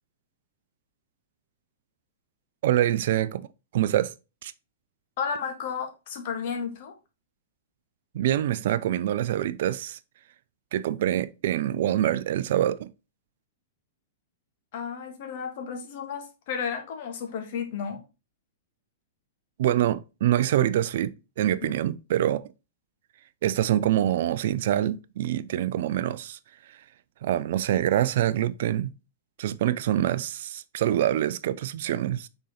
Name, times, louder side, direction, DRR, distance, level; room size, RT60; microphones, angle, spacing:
voice 1, 2.6-3.5 3.7-4.1 4.4-4.5 8.1-10.0 10.7-12.9 19.6-22.4 23.4-26.4 27.2-28.9 29.4-32.3, right 12 dB, 55° right, 0.4 m, -25 dB
voice 2, 5.2-6.9 14.7-18.0 21.6-21.7, left 6 dB, 50° left, 1.6 m, -33 dB
6.2 x 3.9 x 4.2 m
figure-of-eight pair, 105°, 0 cm